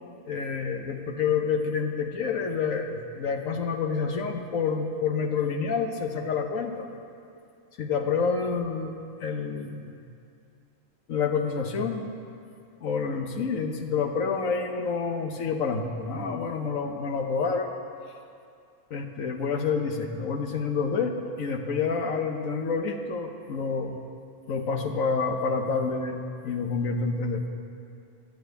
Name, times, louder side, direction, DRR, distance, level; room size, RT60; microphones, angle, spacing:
voice 1, 0.3-6.9 7.8-8.9 9.2-9.9 11.1-12.1 12.8-17.7 18.9-24.0 24.5-27.4, left 5 dB, 75° left, 5 dB, 1.4 m, -28 dB
10.5 x 7.6 x 8.9 m, 2.4 s
omnidirectional pair, 1.4 m